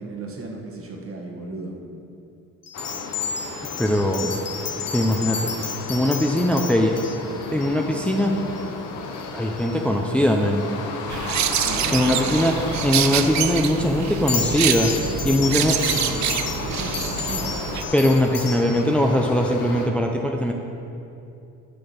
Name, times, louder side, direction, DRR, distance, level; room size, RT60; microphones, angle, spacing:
voice 1, 0.0-1.7 11.6-12.5 15.0-17.6, right 2 dB, 45° right, 0 dB, 1.6 m, -35 dB
sound 1, 2.6-8.6 9.1-9.3 9.6-9.7 14.1-18.7, left 6 dB, 60° left, 1.3 m, -32 dB
sound 2, 2.7-19.9, left 4 dB, 80° left, 1.1 m, -34 dB
voice 2, 3.8-4.3 4.8-7.0 7.5-8.3 9.3-10.6 11.9-12.5 12.8-14.9 15.2-15.8 17.9-20.5, left 1 dB, 5° left, 2 dB, 0.6 m, -21 dB
sound 3, 11.1-17.8, right 10 dB, 65° right, 0.6 m, -26 dB
6.9 x 6.2 x 7.1 m, 2.7 s
cardioid pair, 90°, 30 cm